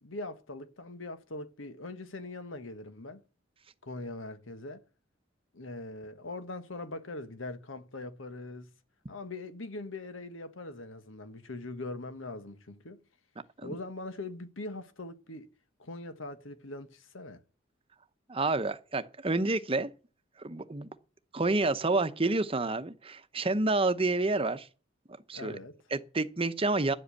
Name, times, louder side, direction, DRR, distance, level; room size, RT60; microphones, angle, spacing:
voice 1, 0.0-3.2 3.8-4.8 5.5-8.7 9.1-13.0 13.6-15.5 15.8-17.4 25.3-25.8, left 2 dB, 85° left, 1.4 m, -41 dB
voice 2, 18.3-19.9 20.4-20.9 21.3-24.7 25.3-25.6 25.9-26.9, right 2 dB, 30° right, 0.9 m, -29 dB
11.0 x 7.9 x 8.3 m
head